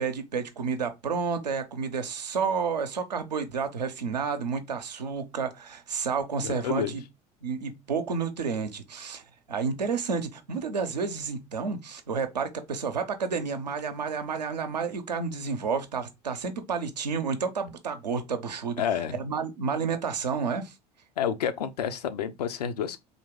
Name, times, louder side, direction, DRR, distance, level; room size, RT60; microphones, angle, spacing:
voice 1, 0.0-7.0 7.4-18.8 19.1-20.7, right 5 dB, 80° right, 0.7 m, -30 dB
voice 2, 6.4-7.0 18.8-19.2 21.2-23.0, left 8 dB, 70° left, 0.5 m, -29 dB
4.0 x 2.9 x 3.5 m
figure-of-eight pair, 70°, 21 cm